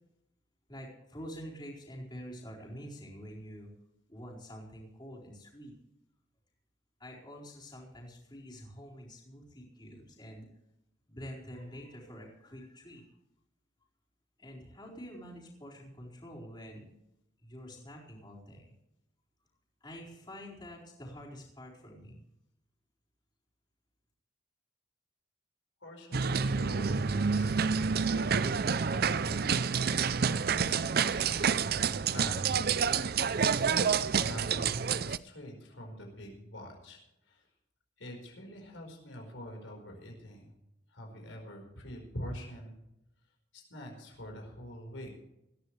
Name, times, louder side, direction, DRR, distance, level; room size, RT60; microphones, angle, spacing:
voice 1, 0.7-3.7 4.1-5.7 7.0-10.5 11.1-13.1 14.4-16.9 17.4-18.7 19.8-22.2, equal, 25° left, -4 dB, 4.5 m, -47 dB
voice 2, 25.8-27.6 28.0-33.2 33.4-37.5 38.0-40.5 40.9-42.8 43.5-45.1, left 1 dB, 85° left, 2 dB, 4.7 m, -46 dB
sound 1, 26.1-35.2, right 6 dB, 50° right, 0.5 m, -28 dB
20.0 x 14.5 x 3.3 m, 0.86 s
head